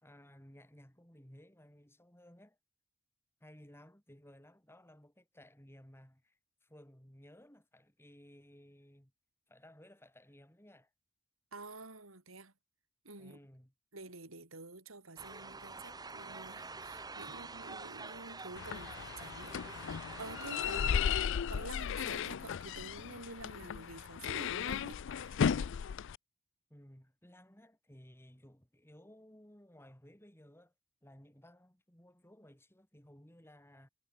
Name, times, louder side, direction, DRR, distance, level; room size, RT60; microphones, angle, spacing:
voice 1, 0.0-2.6 3.4-9.1 9.5-10.9 13.2-13.7 17.3-17.7 20.6-21.3 26.7-30.7 31.0-33.9, equal, 10° left, 4.5 m, -58 dB
voice 2, 11.5-12.5 13.0-13.4 13.9-21.0 21.5-25.4, right 2 dB, 75° right, 4.9 m, -49 dB
sound 1, 15.2-21.1, right 3 dB, 20° right, 1.6 m, -47 dB
sound 2, 18.6-26.2, left 7 dB, 60° left, 0.4 m, -35 dB
head